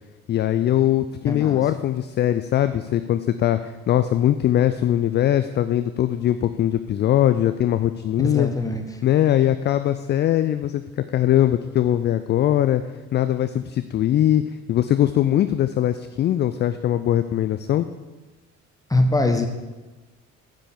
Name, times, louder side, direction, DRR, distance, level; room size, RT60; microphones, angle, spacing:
voice 1, 0.3-8.5 9.0-12.8 13.1-14.4 14.7-17.9, left 11 dB, 25° left, 11 dB, 0.4 m, -21 dB
voice 2, 1.3-1.6 8.2-9.0 18.9-19.5, left 2 dB, 10° left, 5 dB, 1.3 m, -22 dB
9.8 x 5.6 x 7.3 m, 1.2 s
figure-of-eight pair, 50°, 41 cm